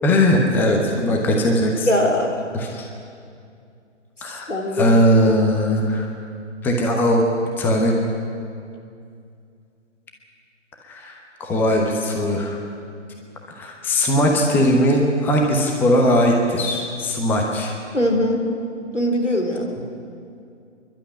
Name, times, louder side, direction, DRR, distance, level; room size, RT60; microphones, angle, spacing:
voice 1, 0.0-1.9 2.5-2.9 4.2-6.1 6.6-7.2 7.6-7.9 10.8-12.6 13.5-17.8, equal, 5° left, 1 dB, 1.1 m, -19 dB
voice 2, 1.9-2.3 4.5-4.8 17.9-18.5 18.9-19.7, left 1 dB, 90° left, 1 dB, 3.9 m, -21 dB
26.5 x 12.0 x 9.8 m, 2.4 s
figure-of-eight pair, 140°, 36 cm